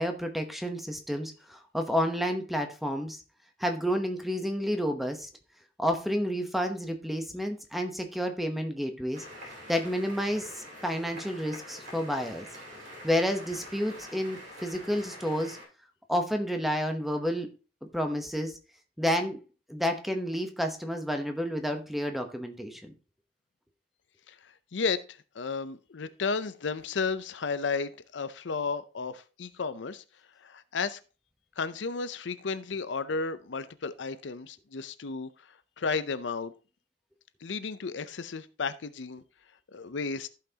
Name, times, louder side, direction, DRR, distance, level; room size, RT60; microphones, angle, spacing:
voice 1, 0.0-3.2 3.6-5.3 5.8-9.2 9.7-12.5 13.0-15.6 16.1-17.5 17.8-18.5 19.0-19.4 19.7-22.9, equal, ahead, 5 dB, 0.9 m, -30 dB
sound 1, 9.1-15.6, equal, 45° right, 3.5 m, -46 dB
voice 2, 25.3-30.0 30.4-31.0 31.6-35.3 35.8-36.5 37.4-39.2 39.7-40.3, left 4 dB, 75° left, 13 dB, 0.6 m, -33 dB
14.5 x 5.8 x 2.9 m, 0.33 s
head